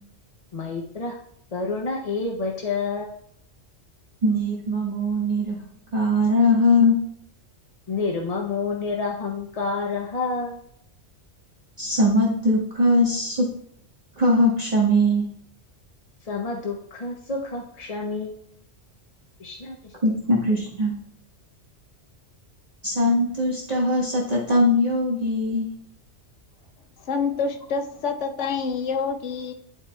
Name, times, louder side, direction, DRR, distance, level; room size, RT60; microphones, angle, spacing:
voice 1, 0.5-1.2 1.5-3.1 7.9-10.6 16.2-18.5 19.4-19.9, left 4 dB, 40° left, 0 dB, 0.6 m, -29 dB
voice 2, 4.2-5.6 5.9-7.0 11.8-13.5 14.2-15.3 20.0-20.9 22.8-25.7, left 1 dB, 35° right, -5 dB, 1.3 m, -21 dB
voice 3, 27.1-29.5, left 5 dB, 85° left, 6 dB, 1.0 m, -27 dB
11.0 x 4.5 x 2.3 m, 0.69 s
omnidirectional pair, 1.2 m